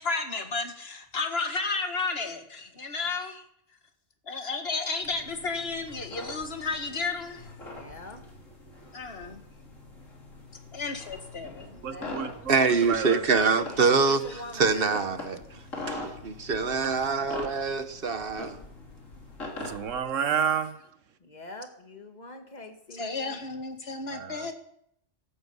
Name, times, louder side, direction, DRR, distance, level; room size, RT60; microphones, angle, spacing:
voice 1, 0.0-3.4 4.3-7.5 8.9-9.4 10.7-11.8 14.3-14.4 22.9-24.5, left 4 dB, 55° left, 1.9 m, -32 dB
sound 1, 5.0-20.0, left 2 dB, 85° left, 3.6 m, -43 dB
voice 2, 7.6-8.3 11.7-12.4 12.7-12.9 13.6-15.1 21.2-23.5, left 2 dB, 35° left, 1.8 m, -44 dB
voice 3, 11.8-13.5 19.6-20.9 24.1-24.5, right 7 dB, 80° right, 1.4 m, -31 dB
voice 4, 12.5-14.2 14.5-15.4 15.9-18.6, right 4 dB, 50° right, 1.3 m, -25 dB
15.5 x 12.5 x 5.5 m
omnidirectional pair, 1.3 m